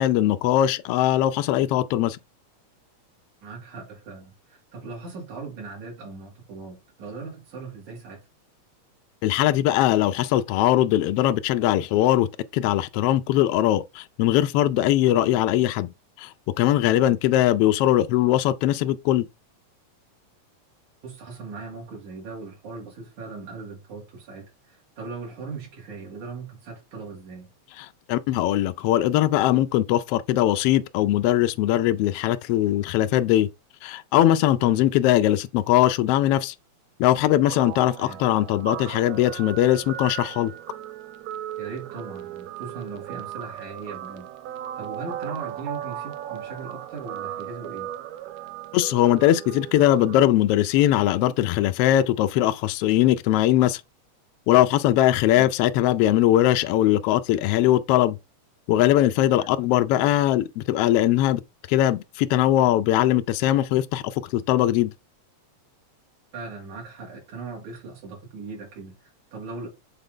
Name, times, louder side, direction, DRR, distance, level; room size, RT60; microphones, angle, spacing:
voice 1, 0.0-2.2 9.2-12.3 12.5-15.9 16.2-16.3 16.6-19.3 28.1-33.5 33.8-36.5 37.0-40.5 48.7-53.8 54.5-58.2 58.7-61.4 61.7-64.9, left 13 dB, 85° left, 1.3 m, -20 dB
voice 2, 3.4-8.2 17.0-17.1 21.0-27.5 34.6-34.8 38.0-38.2 41.6-44.3 44.8-47.9 55.3-55.5 59.4-59.5 66.3-69.7, right 4 dB, 90° right, 4.6 m, -39 dB
Guitar, 37.5-50.2, right 11 dB, 75° right, 1.8 m, -37 dB
8.0 x 4.1 x 3.7 m
omnidirectional pair, 3.3 m